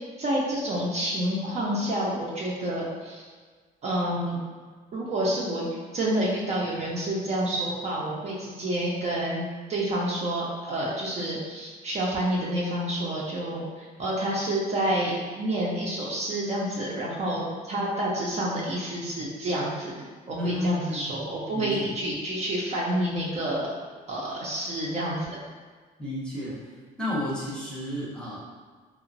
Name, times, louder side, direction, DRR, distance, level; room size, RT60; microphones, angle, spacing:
voice 1, 0.2-3.3 3.8-4.4 4.9-23.7 24.1-25.4, right 1 dB, 40° right, -5 dB, 0.6 m, -29 dB
voice 2, 20.3-21.1 21.5-21.9 26.0-26.7 27.0-28.4, left 1 dB, 5° left, -7 dB, 0.7 m, -31 dB
2.9 x 2.1 x 2.5 m, 1.5 s
cardioid pair, 110°, 17 cm